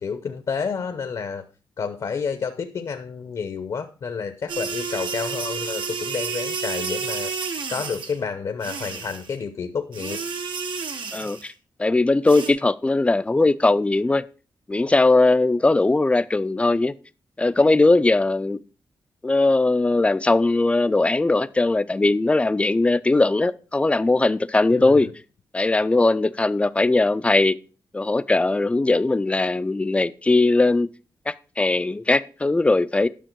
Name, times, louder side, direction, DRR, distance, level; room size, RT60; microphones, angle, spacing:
voice 1, 0.0-1.4 1.8-7.3 7.7-10.2 24.7-25.1, left 5 dB, 55° left, 0.7 m, -30 dB
sound 1, 4.5-8.2 8.6-9.3 9.9-11.5 12.3-12.5, right 5 dB, 90° right, 1.3 m, -30 dB
voice 2, 11.1-11.5 11.8-14.2 14.7-16.9 17.4-18.6 19.2-25.1 25.5-27.6 27.9-30.9 31.3-33.1, left 2 dB, 15° left, 0.4 m, -19 dB
10.5 x 6.5 x 4.5 m
wide cardioid pair, 135°, 8 cm